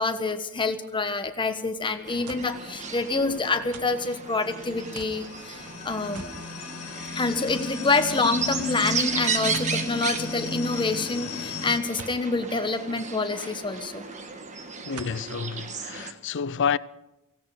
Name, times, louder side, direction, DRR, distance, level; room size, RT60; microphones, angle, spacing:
voice 1, 0.0-6.2 7.1-14.1, left 3 dB, 20° left, 1.2 m, -27 dB
sound 1, 2.1-16.1, right 5 dB, 35° right, 1.5 m, -35 dB
sound 2, 2.3-2.6 3.7-4.1 4.9-5.2 6.1-6.4 6.8-6.9 7.5-7.7 9.5-9.8 12.0-12.2 13.7-13.8 14.9-15.3 16.0-16.1, right 5 dB, 90° right, 1.1 m, -43 dB
sound 3, 3.4-11.8, left 3 dB, 75° left, 2.1 m, -36 dB
voice 2, 14.9-16.8, left 6 dB, 55° left, 0.5 m, -29 dB
18.0 x 16.5 x 4.9 m
head